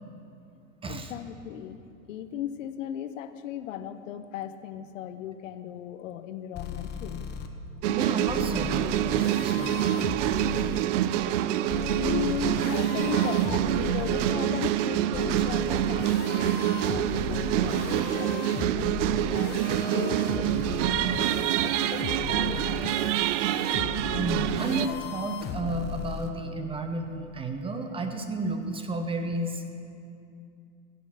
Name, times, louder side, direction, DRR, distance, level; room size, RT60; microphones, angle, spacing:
voice 1, 0.9-7.3 12.0-18.9 19.3-22.7, left 10 dB, 70° left, 11 dB, 0.8 m, -37 dB
sound 1, 6.5-7.5 8.3-10.8 11.7-14.3 15.1-26.3, left 7 dB, 25° left, 0.8 m, -36 dB
sound 2, 7.8-24.9, right 12 dB, 65° right, 0.6 m, -26 dB
voice 2, 7.9-9.9 12.0-12.1 24.2-29.6, right 2 dB, 15° right, 6 dB, 0.7 m, -32 dB
15.5 x 6.2 x 7.7 m, 2.6 s
supercardioid pair, 130°, 39 cm